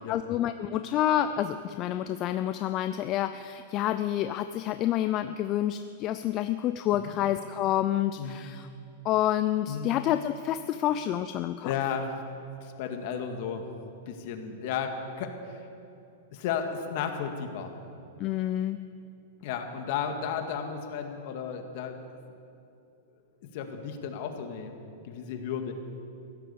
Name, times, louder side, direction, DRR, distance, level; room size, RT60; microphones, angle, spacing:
voice 1, 0.1-8.7 9.0-11.7 18.2-18.8, left 12 dB, 40° left, 10 dB, 0.5 m, -28 dB
voice 2, 11.6-12.1 12.6-13.7 14.1-15.7 16.3-17.7 19.4-22.2 23.5-24.7 25.0-25.7, left 7 dB, 55° left, 5 dB, 1.9 m, -34 dB
16.0 x 12.0 x 7.0 m, 2.7 s
hypercardioid pair, 130°, 0 cm